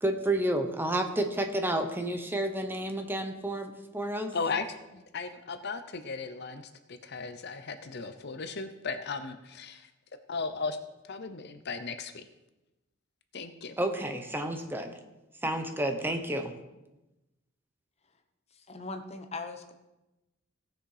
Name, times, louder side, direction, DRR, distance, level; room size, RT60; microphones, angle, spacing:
voice 1, 0.0-4.3 13.8-14.9 15.4-16.5, right 1 dB, 10° right, 5 dB, 1.0 m, -30 dB
voice 2, 4.3-9.9 10.3-10.8 11.1-12.2 13.3-13.8, left 4 dB, 55° left, 9 dB, 0.7 m, -36 dB
voice 3, 18.5-19.7, left 3 dB, 30° left, 7 dB, 1.0 m, -40 dB
17.5 x 6.4 x 4.9 m, 1.0 s
head